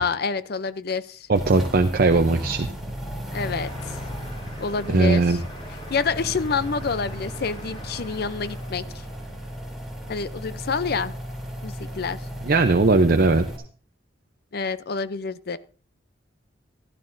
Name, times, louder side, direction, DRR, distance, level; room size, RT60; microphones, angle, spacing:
voice 1, 0.0-1.3 3.3-3.9 4.6-5.4 5.9-8.8 10.1-11.1 11.6-12.2 14.5-15.6, left 5 dB, 55° left, 14 dB, 0.6 m, -28 dB
sound 1, 1.3-13.6, equal, ahead, 3.2 m, -35 dB
voice 2, 1.3-2.7 4.9-5.4 12.4-13.4, right 3 dB, 50° right, 7 dB, 0.6 m, -19 dB
sound 2, 3.3-9.3, equal, 30° left, 3.3 m, -43 dB
15.0 x 12.5 x 2.6 m, 0.42 s
head